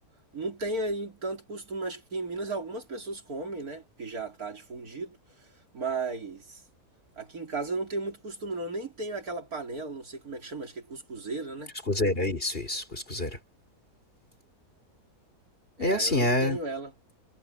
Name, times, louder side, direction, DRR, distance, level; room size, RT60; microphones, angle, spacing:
voice 1, 0.3-5.5 5.7-6.6 7.2-11.7 15.8-16.9, right 3 dB, 60° right, 3.8 m, -35 dB
voice 2, 11.9-13.4 15.8-16.6, left 1 dB, 35° left, 4.0 m, -27 dB
omnidirectional pair, 1.7 m